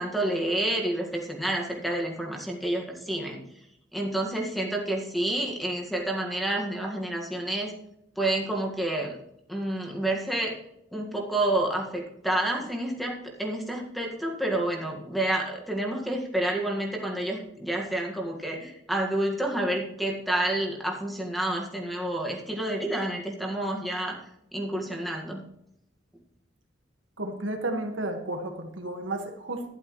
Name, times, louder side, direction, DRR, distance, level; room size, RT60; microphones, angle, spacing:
voice 1, 0.0-3.4 3.9-7.7 8.2-9.2 9.5-10.6 10.9-24.1 24.5-25.4, right 1 dB, ahead, 0 dB, 1.7 m, -29 dB
voice 2, 27.2-29.6, right 2 dB, 85° right, 4 dB, 1.6 m, -32 dB
12.0 x 11.0 x 3.1 m, 0.77 s
head